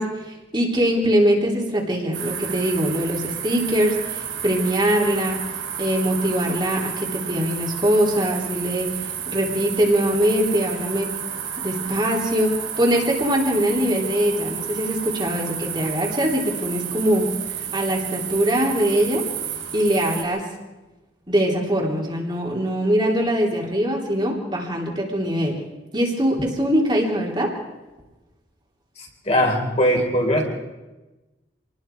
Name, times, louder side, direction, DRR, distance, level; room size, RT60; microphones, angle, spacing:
voice 1, 0.0-5.4 5.8-11.1 11.6-19.2 19.7-20.4 21.3-25.6 25.9-27.5, equal, 25° right, -2 dB, 3.4 m, -22 dB
sound 1, 2.1-20.2, right 8 dB, 90° right, 3.9 m, -31 dB
voice 2, 29.0-30.4, equal, 35° left, 0 dB, 4.1 m, -20 dB
27.0 x 20.0 x 4.7 m, 1.1 s
head